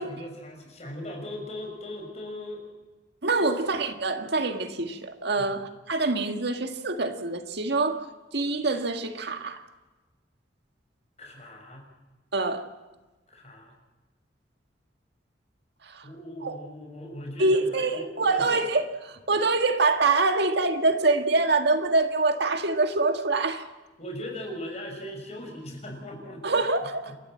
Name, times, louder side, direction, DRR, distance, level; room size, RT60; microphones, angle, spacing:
voice 1, 0.0-2.6 3.4-3.6 5.4-5.5 11.2-11.8 13.3-13.7 16.0-18.6 24.0-26.4 27.1-27.2, left 1 dB, 40° left, 6.2 m, -39 dB
voice 2, 3.2-8.1 8.3-9.6 12.3-12.7 15.8-16.1 16.4-16.6 17.4-23.6 26.4-27.1, right 3 dB, 65° right, 1.8 m, -25 dB
29.5 x 13.0 x 7.6 m
head